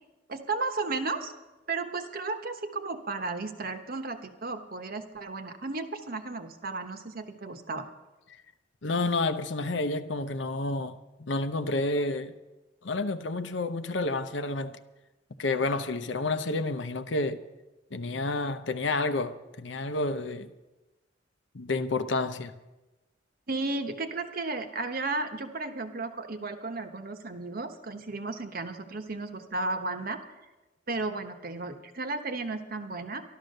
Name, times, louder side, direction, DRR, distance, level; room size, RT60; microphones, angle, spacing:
voice 1, 0.3-1.3 1.7-7.9 23.5-30.2 30.9-33.2, right 3 dB, 50° right, 1.1 m, -34 dB
voice 2, 8.8-12.3 12.8-14.8 15.4-17.4 17.9-20.5 21.5-22.5, left 2 dB, 75° left, 0.8 m, -30 dB
12.5 x 12.0 x 6.6 m
head